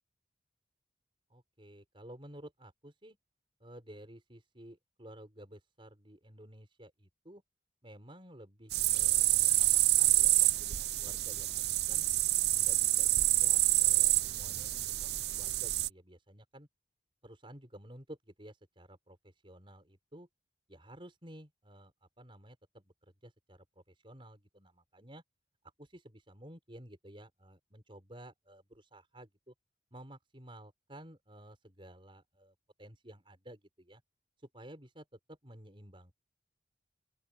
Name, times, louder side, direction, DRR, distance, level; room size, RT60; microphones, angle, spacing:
voice 1, 1.3-3.2 3.6-7.4 7.8-11.6 11.9-12.1 12.4-16.7 17.2-20.3 20.7-25.2 25.8-29.5 29.9-34.0 34.5-36.1, right 1 dB, 30° right, 5.8 m, -53 dB
sound 1, 8.7-15.9, right 16 dB, 60° right, 0.6 m, -27 dB
open air
head